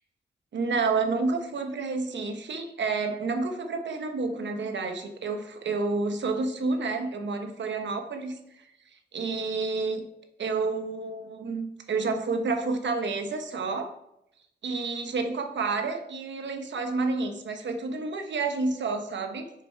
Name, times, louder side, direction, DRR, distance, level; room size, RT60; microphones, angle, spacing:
voice 1, 0.5-8.4 9.1-10.1 10.4-13.9 14.6-19.5, right 3 dB, 80° right, 6 dB, 1.0 m, -29 dB
6.9 x 6.6 x 4.5 m, 0.81 s
wide cardioid pair, 145°, 18 cm